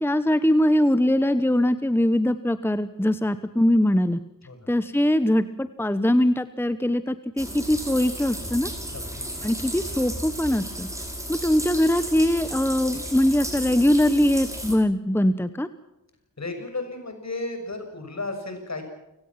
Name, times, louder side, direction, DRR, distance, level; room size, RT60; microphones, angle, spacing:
voice 1, 0.0-4.2 4.7-8.7 9.4-10.9 11.3-15.7, left 1 dB, 5° left, 12 dB, 1.0 m, -22 dB
sound 1, 7.4-14.7, equal, 10° right, 5.7 m, -34 dB
voice 2, 8.9-9.2 16.4-18.8, left 2 dB, 55° left, 6 dB, 6.4 m, -34 dB
29.0 x 17.5 x 5.9 m, 0.91 s
wide cardioid pair, 85°, 33 cm